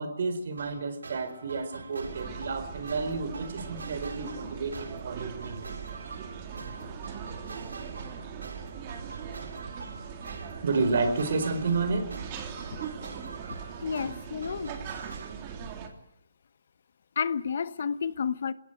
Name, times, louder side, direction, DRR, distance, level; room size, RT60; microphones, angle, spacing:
voice 1, 0.0-5.6 10.5-12.1, right 3 dB, 55° right, 4.4 m, -30 dB
sound 1, 0.6-15.3, right 3 dB, 85° right, 3.8 m, -44 dB
sound 2, 2.0-15.9, right 7 dB, 30° right, 3.1 m, -40 dB
voice 2, 13.8-14.7 17.2-18.5, left 6 dB, 55° left, 1.1 m, -30 dB
21.5 x 17.5 x 9.2 m
hypercardioid pair, 155°, 0 cm